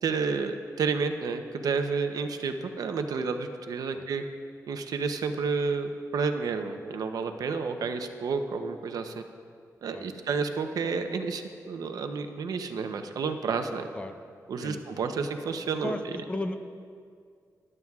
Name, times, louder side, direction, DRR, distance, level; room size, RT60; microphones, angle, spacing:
voice 1, 0.0-4.2 4.7-9.1 9.8-13.9 14.5-15.9, right 5 dB, 75° right, 7 dB, 0.7 m, -30 dB
voice 2, 9.9-10.4 13.9-14.1 14.6-15.0 15.8-16.0 16.3-16.6, left 2 dB, 20° left, 8 dB, 0.5 m, -35 dB
18.0 x 11.0 x 2.4 m, 2.2 s
wide cardioid pair, 170°, 6 cm